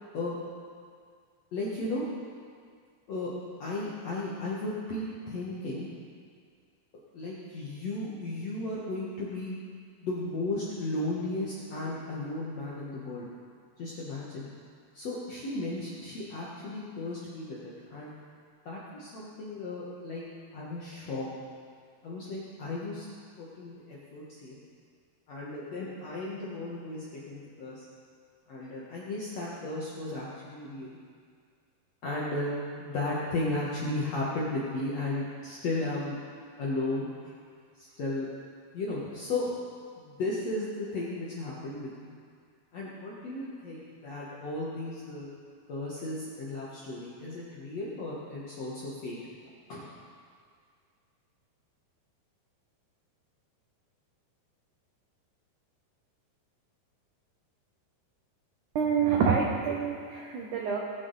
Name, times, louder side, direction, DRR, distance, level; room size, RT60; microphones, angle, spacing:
voice 1, 1.5-2.0 3.1-3.3 3.6-5.9 7.1-9.5 10.0-13.2 13.8-14.5 14.9-18.1 18.6-20.2 20.5-21.3 22.0-23.0 23.4-24.6 25.3-27.8 28.5-31.0 32.0-32.5 32.8-36.1 36.6-37.3 37.8-38.3 38.7-39.6 40.0-42.1 42.7-45.3 45.7-49.2 49.7-49.9, left 2 dB, 65° left, -6 dB, 1.7 m, -35 dB
voice 2, 58.7-60.8, right 6 dB, 85° right, -1 dB, 1.7 m, -27 dB
19.0 x 7.7 x 4.0 m, 2.1 s
omnidirectional pair, 4.9 m